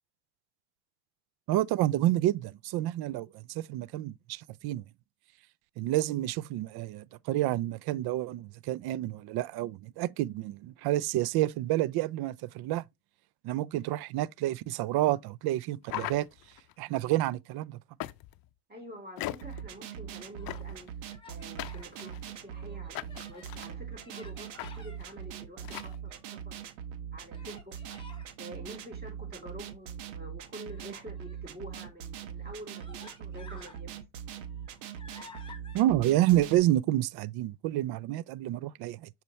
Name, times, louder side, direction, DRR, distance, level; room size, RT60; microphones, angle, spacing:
voice 1, 1.5-4.8 5.8-12.8 13.4-16.3 16.8-17.8 35.7-39.1, right 14 dB, 55° right, 0.5 m, -29 dB
sound 1, 15.8-16.7 18.0-18.5 19.2-19.7 20.5-20.9 21.6-22.4 22.9-23.7 24.6-24.7 25.0-25.1 25.6-25.9, left 15 dB, 50° left, 0.6 m, -39 dB
voice 2, 18.7-26.6 27.1-27.8 28.4-34.0, equal, 20° right, 3.3 m, -47 dB
sound 2, 19.4-36.6, right 8 dB, 90° right, 1.1 m, -42 dB
Human voice, 20.1-20.7 21.1-21.9 22.4-23.6 24.0-25.0 25.6-26.4 27.3-28.3 30.6-31.5 32.2-32.3 32.7-33.8 34.3-35.8, left 3 dB, 10° left, 2.1 m, -53 dB
6.7 x 4.5 x 3.1 m
supercardioid pair, 105°, 47 cm